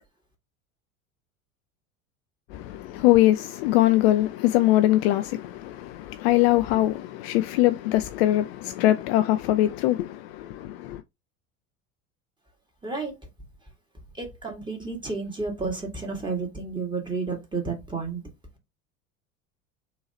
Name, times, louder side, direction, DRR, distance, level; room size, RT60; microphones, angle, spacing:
voice 1, 2.5-11.0, left 15 dB, 50° left, 0.4 m, -22 dB
voice 2, 12.8-13.2 14.2-18.2, right 4 dB, 10° right, 1.8 m, -31 dB
3.9 x 2.8 x 3.9 m
figure-of-eight pair, 70°, 41 cm